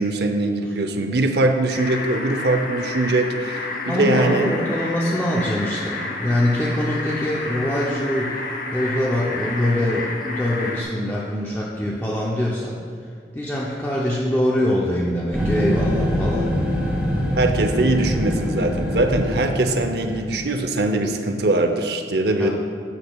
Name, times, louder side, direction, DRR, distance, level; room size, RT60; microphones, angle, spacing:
voice 1, 0.0-4.5 17.4-22.5, right 2 dB, 70° right, 6 dB, 0.7 m, -22 dB
sound 1, 1.7-10.8, left 3 dB, 50° left, 1.0 m, -30 dB
voice 2, 3.9-8.4 8.7-12.8 13.3-16.5 22.4-22.5, left 1 dB, 10° left, -5 dB, 0.7 m, -23 dB
sound 2, 15.3-20.5, equal, 5° right, 1.1 m, -24 dB
12.0 x 8.3 x 2.3 m, 2.3 s
head